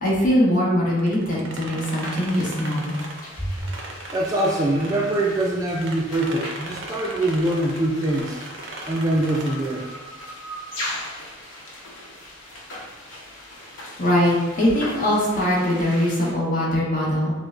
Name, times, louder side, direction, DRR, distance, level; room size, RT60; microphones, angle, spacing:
voice 1, 0.0-3.0 14.0-17.3, equal, 45° left, -6 dB, 1.2 m, -21 dB
sound 1, 1.0-5.5 5.8-9.9, right 2 dB, 70° right, 0.6 m, -38 dB
sound 2, 1.7-16.3, left 1 dB, 85° left, 0.9 m, -39 dB
voice 2, 4.1-8.4 8.9-9.8, right 1 dB, 20° right, -2 dB, 0.4 m, -23 dB
5.8 x 2.2 x 2.5 m, 1.1 s
head